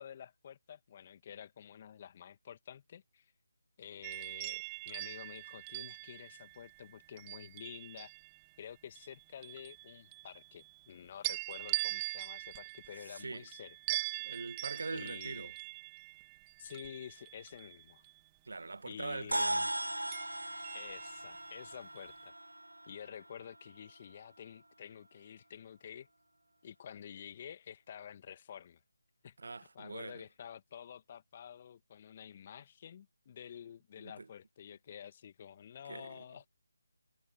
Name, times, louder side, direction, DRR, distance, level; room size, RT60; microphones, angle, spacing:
voice 1, 0.0-3.3 3.8-8.1 8.6-14.4 14.9-15.5 16.6-18.0 18.9-19.7 20.7-22.3 22.9-26.1 26.6-28.8 29.2-29.4 29.7-36.4, left 9 dB, 30° left, 2.0 m, -50 dB
sound 1, 4.0-8.4 8.9-10.9 11.2-18.2 20.1-21.5 21.9-22.2, right 24 dB, 15° right, 1.9 m, -42 dB
voice 2, 13.1-13.5 14.2-15.5 18.4-19.7 29.4-30.2 34.0-34.3 35.9-36.2, right 3 dB, 65° right, 1.6 m, -43 dB
sound 2, 19.3-23.9, right 1 dB, 85° right, 0.6 m, -38 dB
figure-of-eight pair, 155°, 0 cm